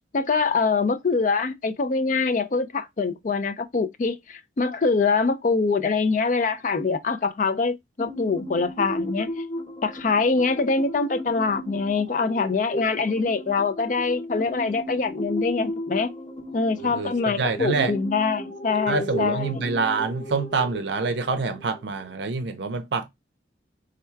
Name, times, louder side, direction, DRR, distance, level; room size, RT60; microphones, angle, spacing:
voice 1, 0.1-9.3 9.8-16.1 16.5-19.6, left 4 dB, 45° left, 0.4 m, -24 dB
sound 1, 8.0-22.4, equal, 30° left, 0.8 m, -35 dB
voice 2, 16.8-17.9 18.9-23.1, right 4 dB, 70° right, 0.5 m, -26 dB
3.5 x 2.3 x 4.4 m
head